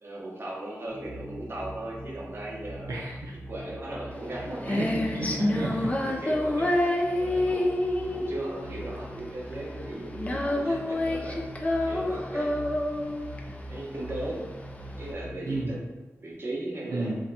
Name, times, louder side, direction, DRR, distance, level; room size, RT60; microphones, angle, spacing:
voice 1, 0.0-2.9 3.5-4.8 5.7-6.8 7.2-7.7 8.0-11.4 11.8-12.6 13.7-14.4 15.0-15.8 16.2-17.1, right 1 dB, 50° right, -4 dB, 0.8 m, -37 dB
sound 1, 0.9-15.6, equal, 5° left, 1.1 m, -43 dB
voice 2, 2.9-3.3 4.7-5.7 15.5-15.7 16.9-17.2, right 2 dB, 85° right, -5 dB, 0.4 m, -31 dB
Female singing, 4.1-15.1, left 1 dB, 25° left, 0.4 m, -28 dB
2.7 x 2.2 x 3.9 m, 1.2 s
wide cardioid pair, 115°, 5 cm